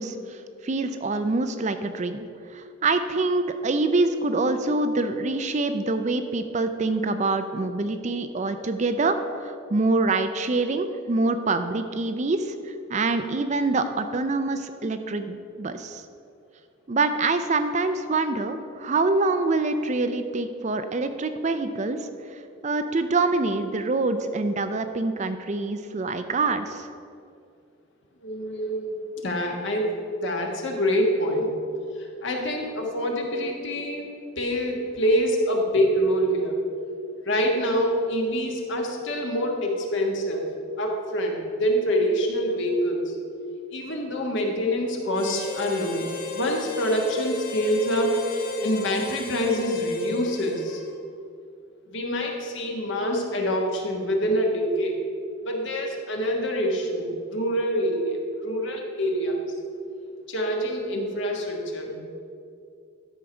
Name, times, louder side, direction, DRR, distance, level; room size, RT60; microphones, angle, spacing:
voice 1, 0.0-2.3 2.5-16.0 16.9-26.9, right 3 dB, 35° right, 9 dB, 0.4 m, -25 dB
voice 2, 28.2-29.0 29.2-29.9 30.2-31.5 32.0-34.0 34.4-36.6 37.2-40.5 40.8-43.1 43.7-50.8 51.9-55.0 55.4-59.5 60.3-62.0, equal, 60° left, 1 dB, 1.4 m, -26 dB
Harmonica, 45.1-51.1, left 5 dB, 45° left, 0.9 m, -36 dB
12.0 x 4.5 x 6.2 m, 2.4 s
head